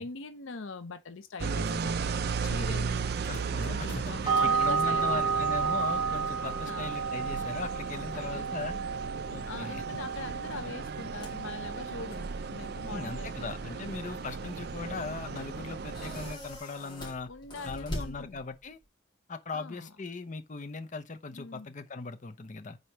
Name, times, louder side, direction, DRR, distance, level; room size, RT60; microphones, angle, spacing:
voice 1, 0.0-2.1 2.4-3.2 3.7-5.6 6.6-7.0 8.1-8.7 9.5-13.8 17.3-18.4 19.5-19.9 21.3-21.7, left 3 dB, 75° left, 0.7 m, -42 dB
sound 1, 1.4-16.3, right 5 dB, 50° right, 0.4 m, -36 dB
sound 2, 2.5-18.9, equal, 25° left, 2.1 m, -48 dB
voice 2, 3.2-8.7 9.3-9.8 10.6-10.8 12.9-17.3 17.6-18.8 19.3-22.8, left 4 dB, 40° left, 0.7 m, -39 dB
sound 3, 4.3-16.6, right 5 dB, 25° right, 0.8 m, -33 dB
4.9 x 4.1 x 5.8 m
head